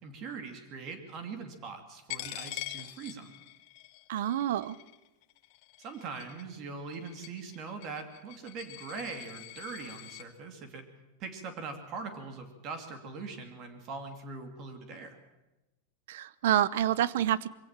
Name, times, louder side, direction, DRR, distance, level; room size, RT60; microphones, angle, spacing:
voice 1, 0.0-3.3 5.8-10.9 11.2-15.2, right 4 dB, 35° right, 6 dB, 2.7 m, -41 dB
Coin (dropping), 2.1-10.2, left 18 dB, 50° left, 1.3 m, -45 dB
voice 2, 4.1-4.8 16.1-17.5, right 11 dB, 70° right, 19 dB, 0.9 m, -27 dB
23.0 x 17.0 x 7.4 m, 1.0 s
supercardioid pair, 155°, 0 cm